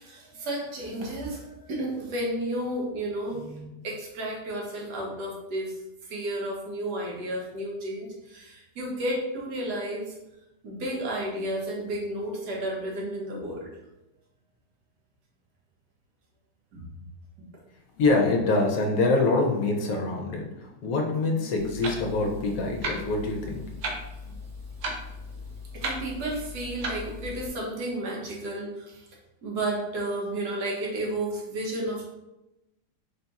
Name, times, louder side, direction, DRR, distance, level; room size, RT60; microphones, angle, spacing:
voice 1, 0.0-5.8 6.1-10.1 10.6-13.7 16.7-16.9 17.4-17.5 25.7-29.1 29.4-32.0, right 1 dB, 85° right, -2 dB, 1.5 m, -32 dB
voice 2, 18.0-23.6 24.2-24.4, left 3 dB, 70° left, 2 dB, 1.0 m, -25 dB
Clock, 21.6-27.5, equal, 65° right, 0.9 m, -36 dB
3.5 x 2.3 x 4.0 m, 0.94 s
omnidirectional pair, 1.7 m